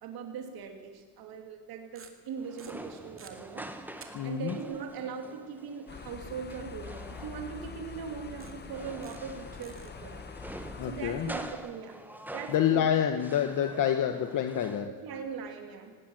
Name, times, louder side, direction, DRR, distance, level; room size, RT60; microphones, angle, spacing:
voice 1, 0.0-10.2 10.8-12.0 12.3-12.9 14.9-16.0, right 6 dB, 70° right, 4 dB, 2.8 m, -40 dB
sound 1, 0.6-0.7 1.9-2.3 2.6-3.3 4.0-4.1 4.4-4.5 7.5-7.6 8.4-8.7 9.0-9.3 9.6-9.9, right 7 dB, 35° right, 2.4 m, -50 dB
sound 2, 2.4-14.9, right 1 dB, 5° right, 1.4 m, -46 dB
voice 2, 4.1-4.6 10.8-11.3 12.5-14.9, left 9 dB, 55° left, 7 dB, 1.3 m, -27 dB
sound 3, 5.9-11.5, left 6 dB, 25° left, 1.0 m, -45 dB
18.5 x 18.0 x 7.9 m, 1.5 s
cardioid pair, 140°, 37 cm